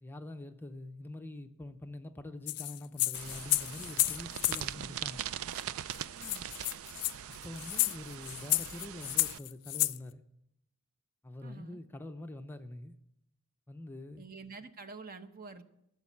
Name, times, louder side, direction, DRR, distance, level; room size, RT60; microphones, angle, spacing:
voice 1, 0.0-5.2 7.4-10.2 11.2-13.0 13.7-14.2, left 1 dB, 10° left, 0.5 m, -45 dB
sound 1, 2.5-4.6 5.6-5.7 5.9-6.0 6.2-10.0, left 18 dB, 75° left, 0.4 m, -31 dB
sound 2, 3.1-9.4, right 10 dB, 65° right, 0.4 m, -41 dB
voice 2, 6.2-6.5 11.4-11.8 14.2-15.6, right 4 dB, 40° right, 0.9 m, -48 dB
14.0 x 7.2 x 8.4 m
head